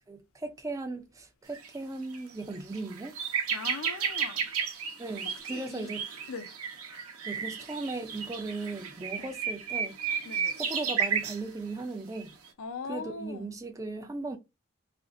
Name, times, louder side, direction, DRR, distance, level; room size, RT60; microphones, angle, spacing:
voice 1, 0.1-3.2 5.0-6.0 7.3-10.0 10.6-12.3 12.9-14.4, right 3 dB, 15° right, 0.3 m, -37 dB
sound 1, 1.5-1.7 2.1-2.2 2.5-11.4 12.2-12.3, right 7 dB, 80° right, 0.7 m, -33 dB
voice 2, 3.5-4.5 5.5-5.9 6.3-6.5 9.2-9.3 10.2-10.5 12.6-13.5, left 4 dB, 70° left, 0.5 m, -40 dB
2.6 x 2.4 x 3.7 m
head